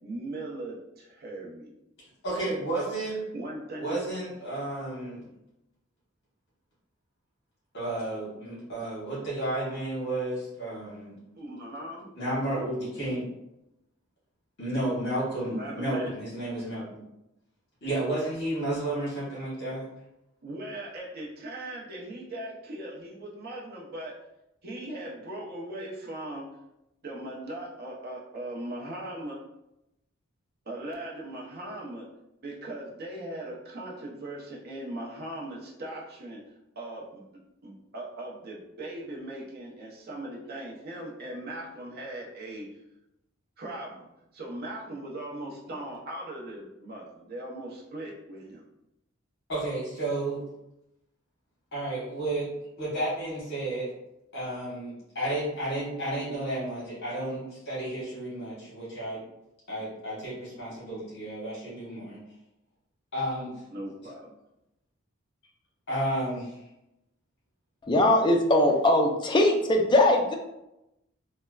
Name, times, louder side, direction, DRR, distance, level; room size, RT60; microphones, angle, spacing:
voice 1, 0.0-1.7 3.3-4.0 11.3-12.1 15.5-16.1 20.4-24.2 24.6-26.5 27.0-29.4 30.7-32.1 32.4-36.4 36.8-37.2 37.6-42.7 43.6-44.1 44.3-48.6 63.7-64.4, right 1 dB, 50° right, 0.6 m, -39 dB
voice 2, 2.2-3.2 3.8-5.3 7.7-11.1 12.1-13.2 14.6-17.0 17.8-19.8 49.5-50.4 51.7-52.5 52.8-53.9 54.3-59.2 59.7-62.2 63.1-63.5 65.9-66.6, right 1 dB, 55° left, 1.3 m, -32 dB
voice 3, 67.8-70.3, left 1 dB, 20° left, 0.3 m, -21 dB
3.1 x 2.1 x 2.3 m
head